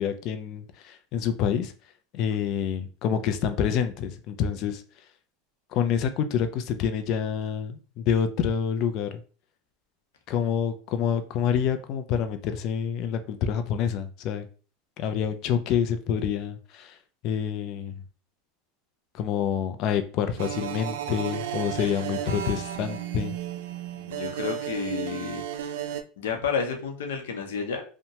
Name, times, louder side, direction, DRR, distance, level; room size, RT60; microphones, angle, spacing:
voice 1, 0.0-1.7 2.1-4.8 5.7-9.2 10.3-14.5 15.0-17.0 17.2-18.0 19.1-23.4, left 8 dB, 50° left, 0.4 m, -27 dB
sound 1, 20.4-26.0, right 10 dB, 85° right, 0.3 m, -33 dB
voice 2, 23.9-25.4 26.2-27.8, left 6 dB, 90° left, 0.7 m, -31 dB
2.8 x 2.1 x 2.8 m
supercardioid pair, 130°, 0 cm